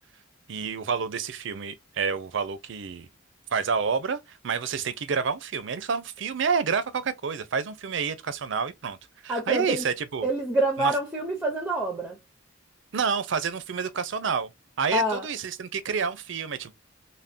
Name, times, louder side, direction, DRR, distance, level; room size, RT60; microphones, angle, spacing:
voice 1, 0.5-3.1 3.5-9.0 9.2-10.3 10.8-10.9 12.9-14.5 14.8-16.7, right 6 dB, 65° right, 0.5 m, -29 dB
voice 2, 9.3-9.8 10.2-12.2 14.9-15.3, right 1 dB, 5° right, 0.6 m, -26 dB
3.4 x 2.1 x 2.5 m
head